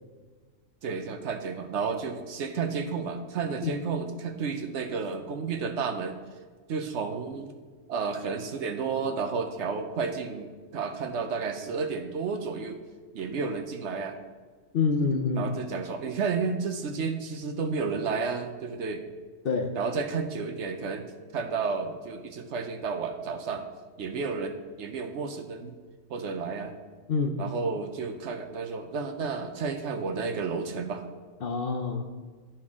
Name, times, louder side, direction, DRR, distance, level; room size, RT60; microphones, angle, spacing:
voice 1, 0.8-6.1 6.7-7.5 7.9-12.8 13.1-14.2 15.3-19.0 19.7-21.0 21.3-23.6 24.0-25.7 26.1-26.7 27.4-31.0, right 5 dB, 65° right, 5 dB, 0.9 m, -31 dB
voice 2, 14.7-15.5 19.4-19.7 27.1-27.4 31.4-32.0, left 4 dB, 55° left, 3 dB, 0.7 m, -26 dB
12.5 x 4.4 x 3.6 m, 1.5 s
omnidirectional pair, 1.4 m